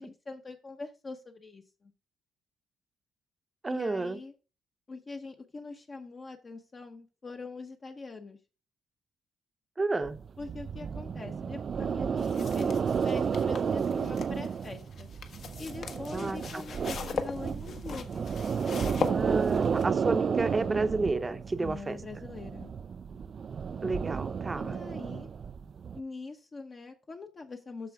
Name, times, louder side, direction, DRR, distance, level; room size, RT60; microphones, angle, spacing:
voice 1, 0.0-1.9 3.7-4.3 4.9-8.4 10.4-15.1 15.6-18.2 21.6-22.7 24.6-25.3 25.9-27.9, left 3 dB, 30° left, 0.9 m, -43 dB
voice 2, 3.6-4.2 9.8-10.2 16.1-16.6 19.1-22.0 23.8-24.7, right 3 dB, 20° right, 0.8 m, -31 dB
sound 1, 10.0-26.0, right 6 dB, 40° right, 0.3 m, -32 dB
sound 2, 12.2-19.8, left 5 dB, 55° left, 1.4 m, -39 dB
13.5 x 4.6 x 3.5 m
cardioid pair, 150°, 0 cm